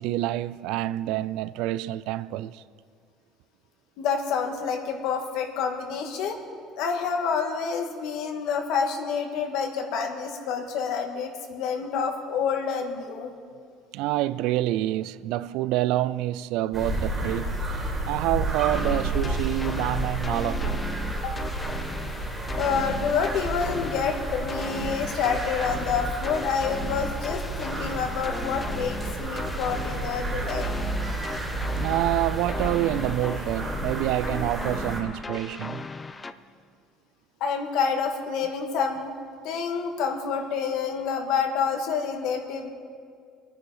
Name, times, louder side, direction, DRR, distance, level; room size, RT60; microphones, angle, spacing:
voice 1, 0.0-2.6 13.9-17.6 18.1-20.7 31.8-35.9, right 15 dB, 75° right, 0.4 m, -27 dB
voice 2, 4.0-6.4 6.8-13.3 20.6-20.9 21.2-21.3 22.5-30.7 37.4-39.1 39.4-42.7, left 6 dB, 70° left, 1.7 m, -28 dB
sound 1, 16.7-35.0, right 2 dB, 15° right, 2.5 m, -31 dB
sound 2, 18.7-36.3, left 3 dB, 15° left, 0.5 m, -37 dB
24.0 x 10.0 x 5.0 m
cardioid pair, 155°, 0 cm